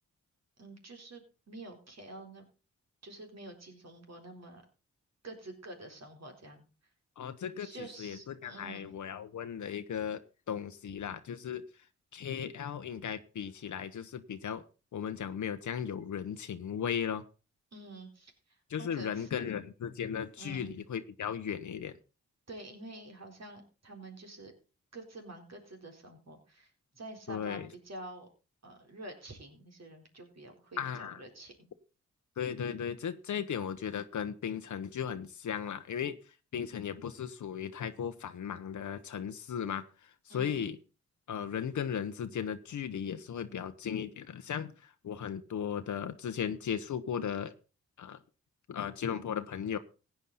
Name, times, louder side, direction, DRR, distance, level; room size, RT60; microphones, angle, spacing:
voice 1, 0.6-2.5 3.0-4.6 5.2-6.6 7.5-8.9 17.7-19.5 20.4-20.7 22.5-24.5 24.9-28.3 28.6-31.7 40.3-40.7, right 2 dB, 60° right, 4.1 m, -48 dB
voice 2, 7.2-10.2 10.5-11.6 12.1-14.6 14.9-17.2 18.7-22.0 27.3-27.7 30.8-31.2 32.4-40.8 41.3-47.5 48.0-48.2 48.7-49.8, left 8 dB, 75° left, 0.9 m, -36 dB
15.5 x 9.2 x 4.1 m
cardioid pair, 45°, 30 cm